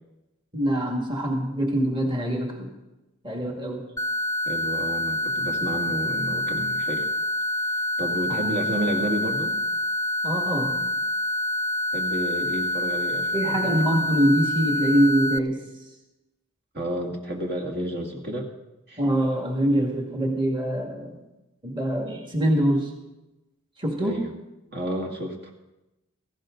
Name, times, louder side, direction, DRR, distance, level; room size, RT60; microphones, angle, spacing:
voice 1, 0.5-2.7 3.2-3.9 8.3-8.6 10.2-10.8 13.3-15.6 19.0-21.2 21.6-22.9 23.8-24.3, right 1 dB, 25° right, 1 dB, 2.1 m, -24 dB
sound 1, 4.0-15.4, left 1 dB, 15° left, 0.4 m, -27 dB
voice 2, 4.5-7.1 8.0-9.5 11.9-13.7 16.7-18.5 18.9-19.0 24.0-24.3 24.7-25.5, right 1 dB, 50° right, 1 dB, 2.3 m, -31 dB
17.0 x 15.5 x 3.9 m, 0.97 s
head